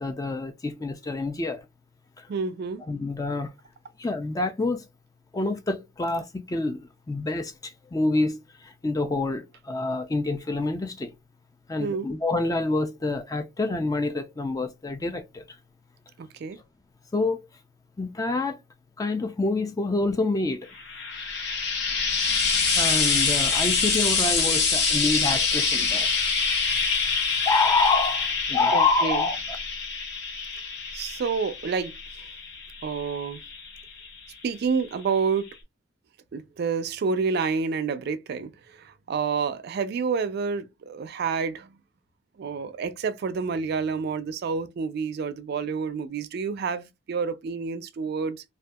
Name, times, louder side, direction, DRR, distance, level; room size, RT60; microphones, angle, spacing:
voice 1, 0.0-1.6 2.2-2.3 2.8-3.5 4.0-4.9 5.3-11.1 11.7-15.6 17.1-17.4 18.0-18.6 19.0-20.7 22.8-26.1 26.6-26.7 27.3-29.4, left 3 dB, 20° left, 0.3 m, -27 dB
voice 2, 2.3-2.8 11.8-12.1 16.2-16.6 28.7-29.3 30.9-32.0 32.8-33.4 34.4-35.5 36.3-41.8 42.4-48.4, right 5 dB, 55° right, 0.3 m, -29 dB
Frying (food), 20.8-34.2 35.1-35.2, left 5 dB, 60° left, 0.7 m, -26 dB
2.6 x 2.3 x 2.2 m
head